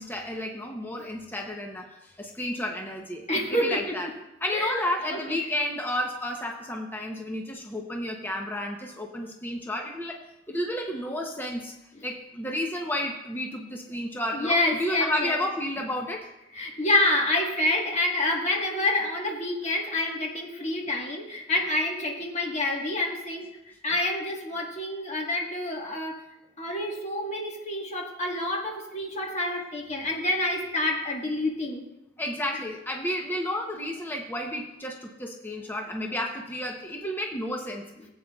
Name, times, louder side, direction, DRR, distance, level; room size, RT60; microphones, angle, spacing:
voice 1, 0.0-3.2 3.5-4.1 4.4-10.2 10.5-11.7 12.0-16.3 32.2-37.8, left 1 dB, 10° left, 1 dB, 0.7 m, -32 dB
voice 2, 3.3-4.0 4.5-5.4 11.9-12.0 14.3-15.4 16.5-23.5 23.8-26.2 26.6-31.9, left 1 dB, 35° left, 0 dB, 1.4 m, -28 dB
16.5 x 8.2 x 2.3 m, 0.93 s
head